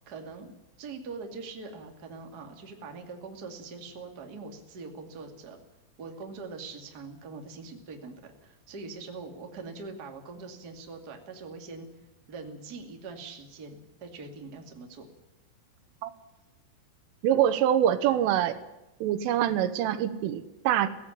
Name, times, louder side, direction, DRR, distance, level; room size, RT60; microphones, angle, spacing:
voice 1, 0.1-0.5 0.8-5.6 6.0-8.2 8.4-11.9 12.3-15.1, right 4 dB, 30° right, 3 dB, 2.1 m, -42 dB
voice 2, 17.2-18.6 19.0-20.9, right 10 dB, 85° right, 12 dB, 3.7 m, -25 dB
16.5 x 16.0 x 10.0 m, 1.0 s
omnidirectional pair, 5.6 m